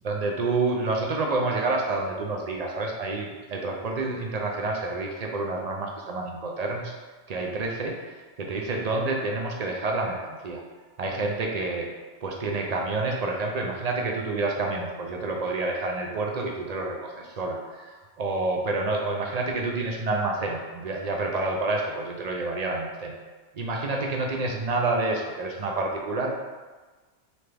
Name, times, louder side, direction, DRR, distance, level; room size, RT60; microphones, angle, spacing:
voice 1, 0.0-6.9 7.3-10.6 11.0-11.9 12.2-23.1 23.5-26.3, right 2 dB, 55° right, 0 dB, 0.4 m, -28 dB
4.0 x 3.3 x 3.3 m, 1.3 s
omnidirectional pair, 1.2 m